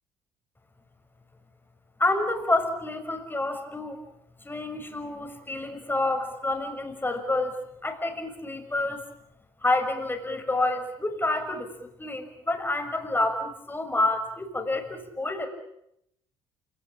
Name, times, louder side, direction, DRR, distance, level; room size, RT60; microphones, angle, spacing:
voice 1, 2.0-4.0 4.4-7.6 7.8-9.0 9.6-11.7 12.0-15.5, left 2 dB, 15° left, 5 dB, 6.3 m, -28 dB
28.5 x 19.0 x 8.8 m, 0.79 s
hypercardioid pair, 55°, 13 cm